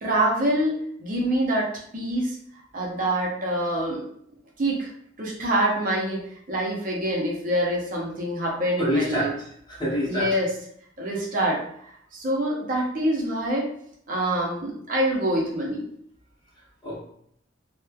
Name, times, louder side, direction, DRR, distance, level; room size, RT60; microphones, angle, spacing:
voice 1, 0.0-2.3 2.7-4.0 4.6-4.9 5.2-6.2 6.5-9.3 10.0-10.5 11.0-11.6 12.1-13.7 14.1-15.9, right 1 dB, 45° right, -2 dB, 0.6 m, -25 dB
voice 2, 8.8-9.3 9.7-10.3 16.8-17.0, equal, 25° left, -4 dB, 0.7 m, -26 dB
2.9 x 2.1 x 2.2 m, 0.68 s
head